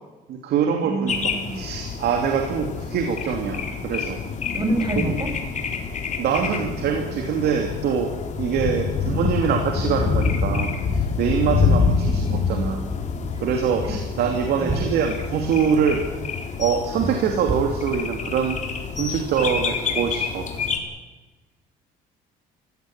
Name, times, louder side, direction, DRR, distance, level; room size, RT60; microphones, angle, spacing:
voice 1, 0.3-4.2 5.0-5.1 6.2-8.1 8.4-12.8 13.4-16.0 16.6-18.6 19.0-20.5, right 7 dB, 70° right, 4 dB, 2.9 m, -24 dB
voice 2, 0.8-1.6 4.5-5.3 8.6-8.7 11.4-12.2 14.5-14.9, right 1 dB, 25° right, 4 dB, 6.0 m, -28 dB
sound 1, 1.1-20.8, left 5 dB, 45° left, 3.9 m, -27 dB
sound 2, 14.2-14.4 14.7-14.9 17.0-17.2 17.5-17.6, right 5 dB, 40° right, 4.5 m, -27 dB
23.5 x 17.0 x 9.0 m, 1.2 s
cardioid pair, 110°, 17 cm